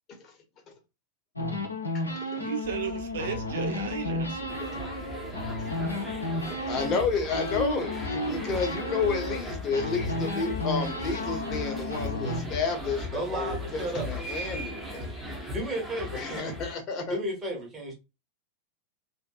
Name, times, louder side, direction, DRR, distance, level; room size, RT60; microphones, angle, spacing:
sound 1, 1.4-7.0 7.3-9.4 9.7-12.4, left 2 dB, 85° left, 0.6 m, -33 dB
voice 1, 2.4-4.5, right 7 dB, 60° right, 0.4 m, -34 dB
sound 2, 2.6-15.4, right 5 dB, 40° right, 1.1 m, -44 dB
sound 3, 4.5-16.8, left 3 dB, 5° left, 0.7 m, -38 dB
voice 2, 6.7-15.1 16.1-17.2, left 4 dB, 30° left, 0.9 m, -31 dB
voice 3, 13.1-14.1 15.3-16.6 17.1-17.9, right 1 dB, 20° right, 1.1 m, -33 dB
2.6 x 2.5 x 2.3 m
figure-of-eight pair, 90°, 0 cm